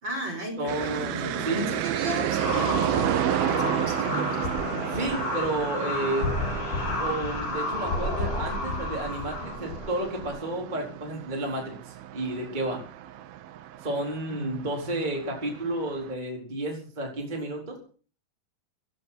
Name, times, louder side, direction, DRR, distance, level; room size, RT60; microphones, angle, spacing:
voice 1, 0.0-5.2 14.3-15.1, equal, 30° right, 4 dB, 5.4 m, -36 dB
voice 2, 0.6-1.7 4.9-6.3 7.0-12.8 13.8-17.8, right 1 dB, 10° right, -1 dB, 4.2 m, -31 dB
sound 1, 0.7-16.1, right 11 dB, 80° right, 2.9 m, -32 dB
sound 2, 2.3-10.4, left 2 dB, 75° left, 6.9 m, -31 dB
16.0 x 14.5 x 5.9 m, 0.41 s
omnidirectional pair, 4.3 m